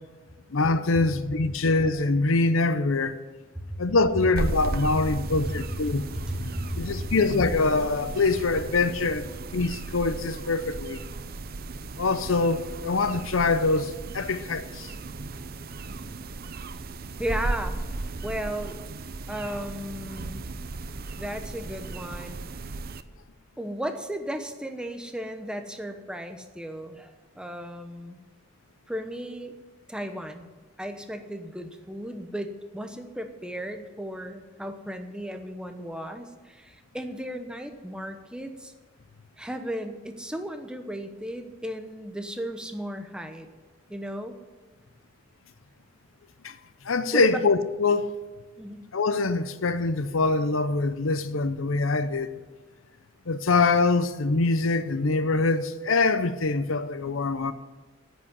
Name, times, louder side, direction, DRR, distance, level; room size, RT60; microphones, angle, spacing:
voice 1, 0.5-3.2 3.8-6.1 6.4-6.5 6.8-11.0 12.0-14.9 46.4-46.6 46.8-48.2 48.9-52.3 53.3-57.5, left 3 dB, 90° left, 0.7 m, -24 dB
sound 1, 4.4-23.0, right 3 dB, 50° right, 0.6 m, -36 dB
voice 2, 6.1-7.1 17.2-17.8 18.2-18.8 19.3-20.4 21.2-22.4 23.6-28.2 28.9-29.5 29.9-30.5 30.8-38.7 39.4-43.5 43.9-44.3 47.1-47.4 48.6-48.9, equal, 5° right, 1.0 m, -35 dB
10.0 x 8.3 x 9.6 m
head